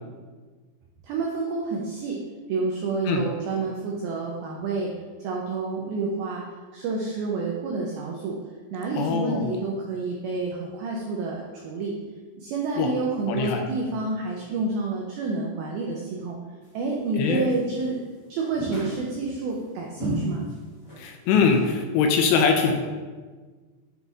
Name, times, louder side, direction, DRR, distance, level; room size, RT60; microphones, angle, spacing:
voice 1, 1.0-2.2 2.5-4.9 5.2-6.4 6.7-8.4 8.7-11.9 12.4-16.4 16.7-18.0 18.3-20.4, right 3 dB, 90° right, -1 dB, 2.1 m, -29 dB
voice 2, 8.9-9.5 12.8-12.9 13.3-13.6 17.2-17.5 21.0-22.7, left 5 dB, 80° left, 4 dB, 2.7 m, -22 dB
sound 1, 17.3-17.9 18.6-19.4 20.0-20.6 20.8-21.0 21.3-21.7, equal, 40° left, 1.6 m, -33 dB
7.8 x 4.0 x 3.5 m, 1.4 s
omnidirectional pair, 5.1 m